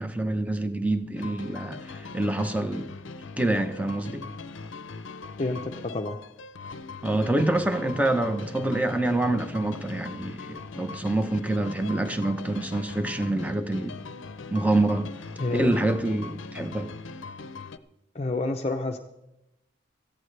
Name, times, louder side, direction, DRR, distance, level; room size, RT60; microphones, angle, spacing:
voice 1, 0.0-2.9 3.4-4.3 7.0-14.0 14.5-15.1 15.5-16.9, right 2 dB, 10° right, 0.8 m, -26 dB
sound 1, 1.2-17.8, left 4 dB, 90° left, 0.7 m, -41 dB
voice 2, 5.4-6.2 15.4-15.7 18.1-19.0, left 2 dB, 35° left, 0.6 m, -29 dB
18.0 x 14.5 x 3.3 m
head